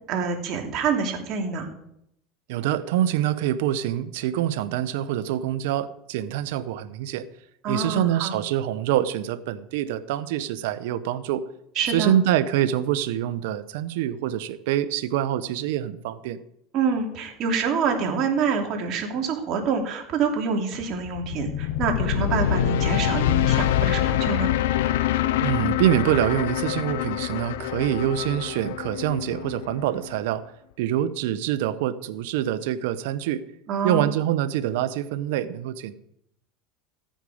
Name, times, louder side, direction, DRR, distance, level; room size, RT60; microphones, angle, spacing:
voice 1, 0.1-1.7 7.6-8.3 11.7-12.2 16.7-24.5 33.7-34.1, right 5 dB, 50° right, 2 dB, 2.8 m, -26 dB
voice 2, 2.5-7.3 7.7-11.5 11.9-16.4 25.4-30.4 30.8-33.4 33.8-35.9, right 11 dB, 75° right, 14 dB, 0.9 m, -25 dB
sound 1, 21.0-30.2, left 12 dB, 80° left, 0.6 m, -25 dB
15.0 x 9.1 x 5.0 m, 0.77 s
supercardioid pair, 105°, 0 cm